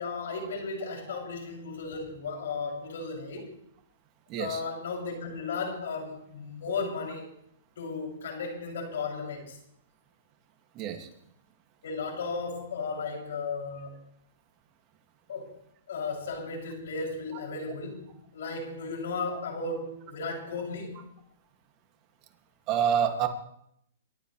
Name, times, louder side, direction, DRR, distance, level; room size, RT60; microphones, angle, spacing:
voice 1, 0.0-3.5 4.4-7.3 7.8-9.6 11.8-13.9 15.3-15.5 15.9-21.0, left 4 dB, 75° left, 0 dB, 6.8 m, -35 dB
voice 2, 4.3-4.6 10.8-11.1 22.7-23.3, right 8 dB, 35° right, 4 dB, 2.2 m, -27 dB
27.5 x 13.0 x 3.3 m, 0.74 s
hypercardioid pair, 135°, 0 cm